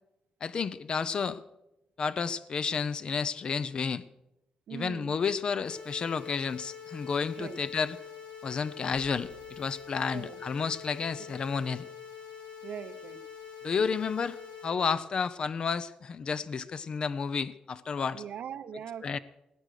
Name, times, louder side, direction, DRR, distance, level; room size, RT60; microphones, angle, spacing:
voice 1, 0.4-1.4 2.0-4.0 4.7-8.0 8.4-11.9 13.6-14.4 14.6-18.2 19.0-19.2, left 5 dB, 40° left, 15 dB, 0.6 m, -31 dB
voice 2, 4.7-5.2 7.4-7.6 10.1-10.4 12.6-13.2 18.1-19.2, right 8 dB, 75° right, 13 dB, 0.8 m, -41 dB
sound 1, 5.6-14.6, left 7 dB, 80° left, 7.3 m, -45 dB
sound 2, 8.9-11.0, right 3 dB, ahead, 6.5 m, -57 dB
19.0 x 9.0 x 6.4 m, 0.90 s
wide cardioid pair, 165°, 2 cm